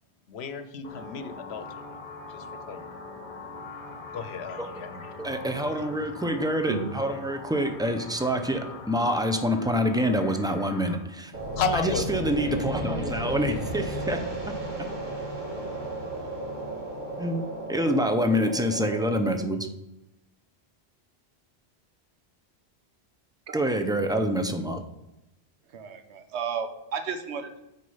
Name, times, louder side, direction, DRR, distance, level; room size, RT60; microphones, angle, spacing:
voice 1, 0.3-1.8 2.3-2.9 3.2-5.1 5.4-5.8 11.5-12.1, left 5 dB, 75° left, 10 dB, 0.9 m, -34 dB
sound 1, 0.8-11.0, left 3 dB, 35° left, 1.1 m, -42 dB
voice 2, 5.2-11.3 11.7-14.2 14.5-14.9 17.2-17.4 17.7-19.7 23.5-24.9, equal, 5° right, 6 dB, 0.4 m, -26 dB
sound 2, 11.3-19.2, right 1 dB, 45° right, 1.8 m, -34 dB
voice 3, 25.7-27.6, right 6 dB, 90° right, 7 dB, 1.1 m, -33 dB
6.3 x 4.5 x 5.5 m, 0.93 s
omnidirectional pair, 1.1 m